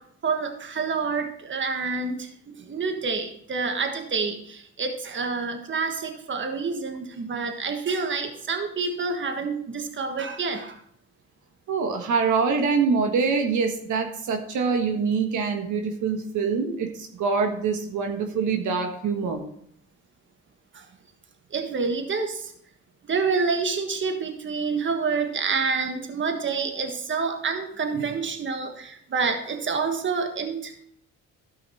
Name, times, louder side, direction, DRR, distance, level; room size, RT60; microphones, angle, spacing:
voice 1, 0.0-10.8 20.7-20.9 21.5-22.5 23.1-30.8, right 4 dB, 40° right, 5 dB, 1.5 m, -28 dB
voice 2, 11.7-19.4, right 5 dB, 75° right, 4 dB, 1.5 m, -25 dB
13.0 x 5.7 x 4.3 m, 0.66 s
cardioid pair, 90°, 30 cm